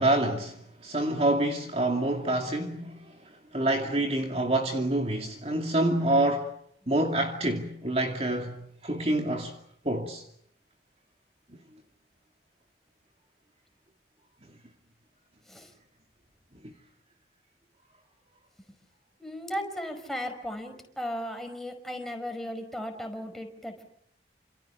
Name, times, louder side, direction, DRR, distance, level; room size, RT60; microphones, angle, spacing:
voice 1, 0.0-6.5 6.9-9.6 9.8-10.2 16.6-16.7, right 1 dB, 35° right, 2.5 m, -27 dB
voice 2, 19.2-23.8, equal, ahead, 5.2 m, -36 dB
29.0 x 28.0 x 7.0 m
head